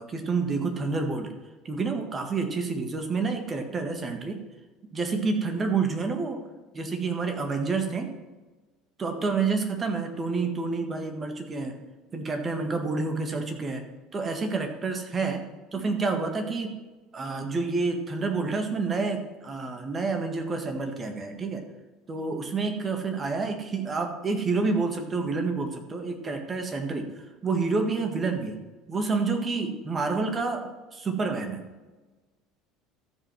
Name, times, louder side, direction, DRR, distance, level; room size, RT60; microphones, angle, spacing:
voice 1, 0.0-1.3 1.6-4.4 4.9-6.4 6.7-8.1 9.0-11.8 12.1-13.9 14.1-15.4 15.7-16.8 17.1-21.7 22.1-28.6 28.9-31.7, right 4 dB, 30° right, 5 dB, 1.7 m, -29 dB
13.5 x 5.4 x 6.0 m, 1.2 s
figure-of-eight pair, 65°, 0 cm